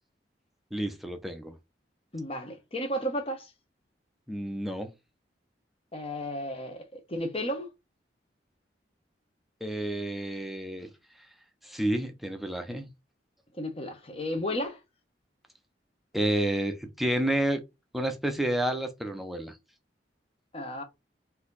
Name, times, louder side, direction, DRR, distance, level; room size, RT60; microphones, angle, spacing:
voice 1, 0.7-1.6 4.3-4.9 9.6-10.9 11.6-12.9 16.1-17.6 17.9-19.5, right 1 dB, ahead, 0.6 m, -30 dB
voice 2, 2.1-3.5 5.9-7.7 13.5-14.8 20.5-20.8, equal, 30° left, 1.0 m, -33 dB
4.1 x 2.8 x 3.9 m
head